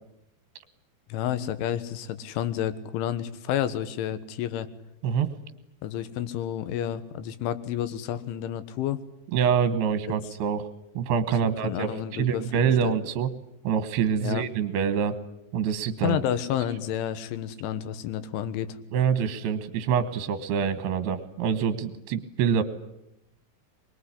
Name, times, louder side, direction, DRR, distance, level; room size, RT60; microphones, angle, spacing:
voice 1, 1.1-4.7 5.8-9.0 10.1-10.2 11.4-12.5 12.8-12.9 14.2-14.4 16.0-18.8, left 10 dB, 85° left, 13 dB, 3.7 m, -30 dB
voice 2, 9.3-10.7 10.9-13.3 13.6-15.1 15.5-16.2 18.9-22.6, right 7 dB, 70° right, 12 dB, 3.0 m, -25 dB
23.5 x 22.0 x 10.0 m, 0.83 s
omnidirectional pair, 5.4 m